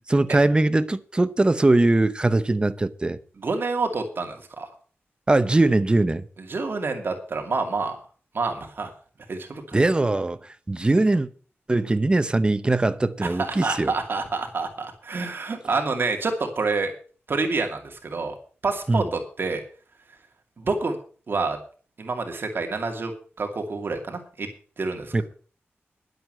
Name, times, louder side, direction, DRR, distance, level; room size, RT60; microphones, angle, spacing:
voice 1, 0.1-3.2 5.3-6.2 9.7-11.3 11.7-13.9 18.9-19.1 25.1-25.2, right 2 dB, 20° right, 0.8 m, -21 dB
voice 2, 3.4-4.7 6.5-8.0 8.3-8.9 9.3-9.8 13.2-16.9 17.3-18.3 18.6-19.6 20.6-21.0 21.3-21.6 22.0-23.1 23.4-24.5 24.8-25.2, right 3 dB, 55° right, 2.4 m, -27 dB
11.0 x 7.9 x 7.7 m
wide cardioid pair, 145°, 4 cm